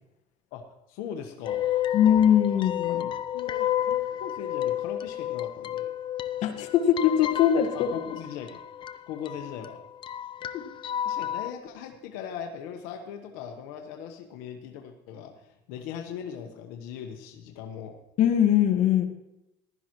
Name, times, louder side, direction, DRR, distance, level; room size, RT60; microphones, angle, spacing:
voice 1, 0.9-1.7 2.5-5.9 7.7-8.6 9.1-9.8 11.0-17.9, left 8 dB, 80° left, 4 dB, 1.2 m, -39 dB
sound 1, 1.4-11.5, left 11 dB, 35° left, 0.5 m, -31 dB
voice 2, 1.9-3.1 6.4-7.9 10.5-10.7 18.2-19.1, left 9 dB, 55° left, 4 dB, 1.5 m, -21 dB
15.0 x 12.0 x 3.0 m, 0.90 s
cardioid pair, 120°, 15 cm